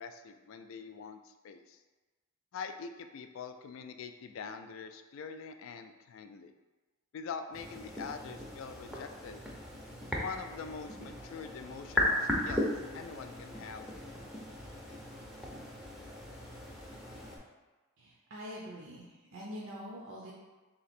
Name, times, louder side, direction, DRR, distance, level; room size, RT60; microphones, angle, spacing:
voice 1, 0.0-1.8 2.5-6.5 7.1-9.4 10.2-13.9, left 5 dB, 60° left, 8 dB, 0.3 m, -44 dB
sound 1, 7.5-17.4, left 1 dB, ahead, 0.5 m, -37 dB
voice 2, 18.0-20.3, equal, 60° right, -5 dB, 0.6 m, -44 dB
3.3 x 2.9 x 4.2 m, 1.2 s
head